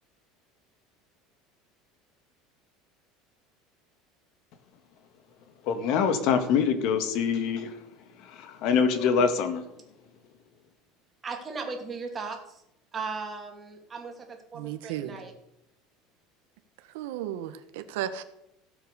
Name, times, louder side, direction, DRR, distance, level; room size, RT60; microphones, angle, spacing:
voice 1, 5.7-7.7 8.3-9.7, left 6 dB, 55° left, 1.9 m, -24 dB
voice 2, 11.2-12.6 12.9-15.3, right 4 dB, 20° right, 2.6 m, -37 dB
voice 3, 14.5-15.2 16.9-18.2, right 11 dB, 85° right, 1.3 m, -34 dB
15.5 x 7.6 x 6.8 m
cardioid pair, 155°, 0 cm